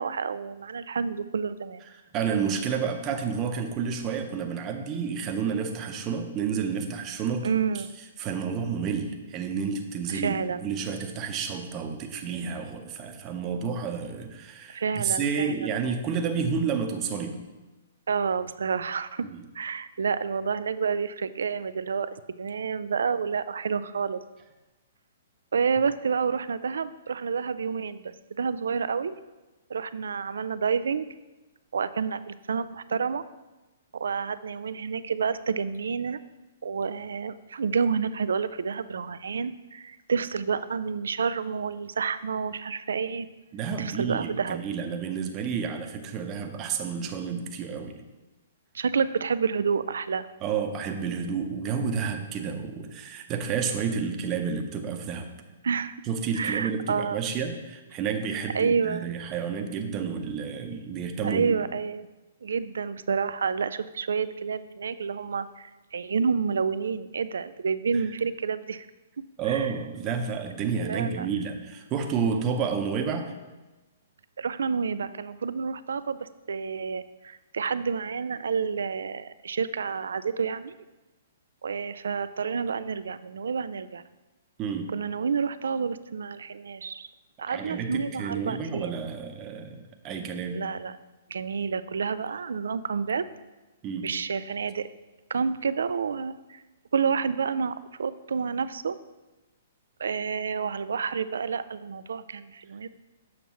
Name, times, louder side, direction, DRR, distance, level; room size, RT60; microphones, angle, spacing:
voice 1, 0.0-1.8 7.4-7.9 10.1-10.6 14.7-15.7 18.1-19.3 19.5-24.2 25.5-29.2 29.7-31.1 31.7-33.2 33.9-36.2 36.6-43.3 43.8-44.6 48.7-50.3 55.6-56.0 56.3-57.2 58.2-59.1 61.2-62.1 62.4-68.9 69.4-69.9 70.8-71.3 74.4-80.7 81.6-84.0 84.9-87.1 87.4-89.0 90.5-91.0 91.3-93.2 94.0-94.9 95.3-96.6 96.9-99.0 100.0-102.9, right 6 dB, 80° right, 14 dB, 0.3 m, -29 dB
voice 2, 2.1-7.5 7.7-7.8 8.2-17.4 19.2-19.4 43.5-48.0 50.4-55.3 56.0-61.5 67.9-68.0 69.4-73.3 84.6-84.9 87.5-90.6 93.8-94.1, right 6 dB, 30° right, 4 dB, 0.7 m, -30 dB
7.1 x 6.0 x 3.0 m, 1.1 s
hypercardioid pair, 130°, 0 cm